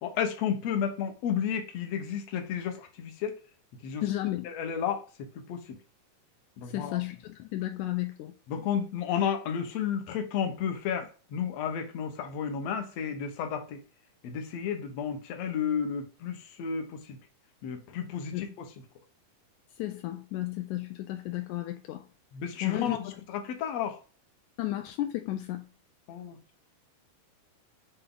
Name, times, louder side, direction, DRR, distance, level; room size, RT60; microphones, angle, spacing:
voice 1, 0.0-3.4 3.8-4.0 4.4-5.1 5.4-5.8 6.6-7.0 8.5-13.8 14.2-17.2 17.6-18.7 22.3-24.0 26.1-26.4, left 8 dB, 65° left, 1.8 m, -32 dB
voice 2, 4.0-4.5 6.6-8.3 18.3-18.5 19.8-22.1 22.6-23.2 24.6-25.7, left 15 dB, 85° left, 1.7 m, -33 dB
7.9 x 3.4 x 3.8 m
omnidirectional pair, 3.9 m